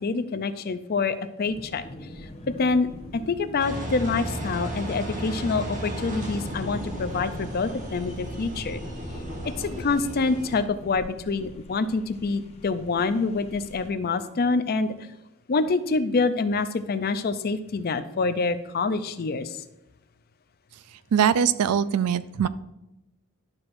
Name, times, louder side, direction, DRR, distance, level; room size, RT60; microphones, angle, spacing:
voice 1, 0.0-1.8 2.5-2.9 3.1-8.8 9.4-15.0 15.5-19.6, left 4 dB, 45° left, 11 dB, 0.5 m, -26 dB
sound 1, 1.4-13.9, left 1 dB, 30° left, 0.9 m, -43 dB
Engine, 3.6-10.6, right 1 dB, 35° right, 1.3 m, -34 dB
voice 2, 21.1-22.5, right 8 dB, 90° right, 16 dB, 0.4 m, -22 dB
11.5 x 5.9 x 2.6 m, 0.95 s
head